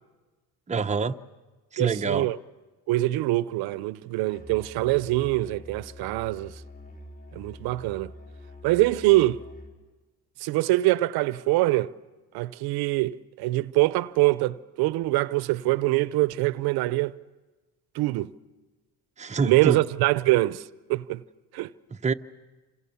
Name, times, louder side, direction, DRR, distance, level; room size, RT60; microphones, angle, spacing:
voice 1, 0.7-1.2 1.7-2.3 19.2-19.8 22.0-22.1, right 5 dB, 20° right, 0.8 m, -25 dB
voice 2, 1.8-2.4 2.9-6.6 7.3-8.1 8.6-9.4 10.4-11.9 12.3-17.1 17.9-18.3 19.4-21.2 21.5-21.7, right 18 dB, 85° right, 0.8 m, -24 dB
Musical instrument, 4.3-9.8, left 1 dB, 20° left, 4.6 m, -45 dB
27.5 x 27.5 x 7.0 m
cardioid pair, 105°, 37 cm